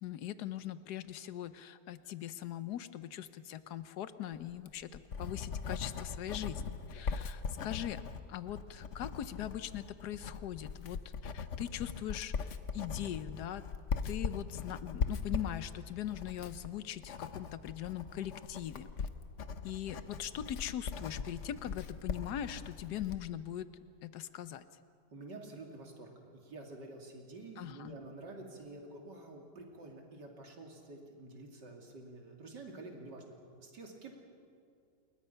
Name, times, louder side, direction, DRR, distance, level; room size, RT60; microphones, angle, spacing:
voice 1, 0.0-8.0 8.3-13.6 14.0-18.9 19.6-23.7 24.0-24.6 27.6-28.0, left 11 dB, 70° left, 13 dB, 1.3 m, -41 dB
Writing, 4.5-23.3, left 5 dB, 50° left, 1.1 m, -40 dB
voice 2, 25.1-34.1, right 2 dB, 70° right, 1 dB, 3.3 m, -49 dB
29.5 x 21.5 x 5.7 m, 2.4 s
omnidirectional pair, 1.9 m